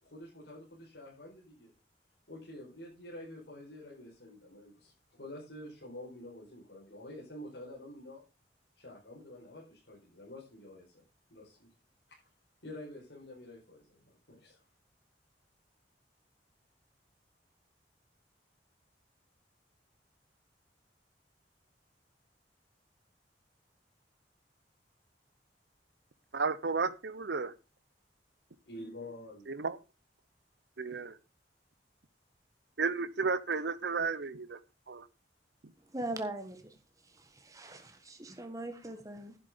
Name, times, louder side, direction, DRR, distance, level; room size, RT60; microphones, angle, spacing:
voice 1, 0.0-1.7 2.3-4.9 5.2-8.2 8.8-11.0 11.3-11.7 12.6-14.6 28.7-29.4, left 1 dB, 75° left, -5 dB, 4.8 m, -48 dB
voice 2, 26.3-27.5 29.6-29.7 30.8-31.2 32.8-34.6 34.9-35.1, right 4 dB, 70° right, 15 dB, 0.8 m, -32 dB
voice 3, 35.9-36.7 37.1-39.4, right 1 dB, 20° right, 6 dB, 1.5 m, -41 dB
11.0 x 7.5 x 5.1 m, 0.30 s
head